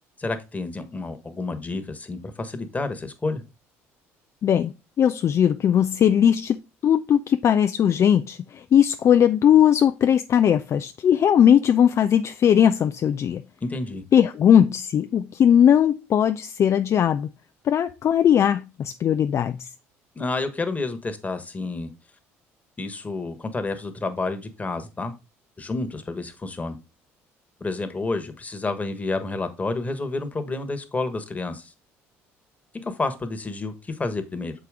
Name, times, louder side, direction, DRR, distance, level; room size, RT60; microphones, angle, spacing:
voice 1, 0.2-3.4 13.6-14.0 20.1-21.9 22.8-25.1 25.6-26.8 27.6-31.7 32.8-34.5, left 3 dB, 20° left, 1.3 m, -30 dB
voice 2, 4.4-13.4 14.1-17.3 17.6-19.7, left 9 dB, 45° left, 0.4 m, -19 dB
6.6 x 4.9 x 3.6 m
hypercardioid pair, 65°, 7 cm